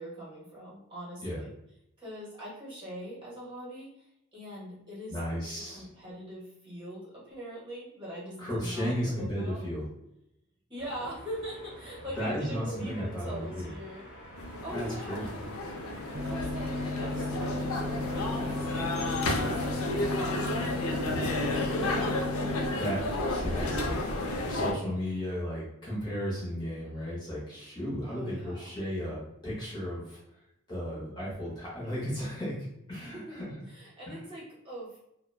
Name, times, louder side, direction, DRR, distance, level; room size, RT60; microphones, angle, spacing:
voice 1, 0.0-1.5 2.0-5.2 5.6-9.7 10.7-14.1 14.6-15.3 16.2-22.2 23.1-24.2 28.1-28.8 33.0-33.4 33.7-35.0, equal, 25° right, -6 dB, 0.9 m, -42 dB
voice 2, 5.1-5.8 8.4-9.8 12.2-13.7 14.7-15.3 22.8-23.0 23.3-23.9 24.4-30.2 30.7-32.5 32.9-33.7 34.1-34.2, equal, 20° left, -7 dB, 0.7 m, -34 dB
sound 1, 10.8-19.8, equal, 50° left, 1.1 m, -48 dB
sound 2, 14.4-24.7, left 2 dB, 85° left, 0.4 m, -32 dB
sound 3, 16.1-22.7, left 2 dB, 60° right, 0.6 m, -35 dB
2.8 x 2.0 x 2.2 m, 0.81 s
head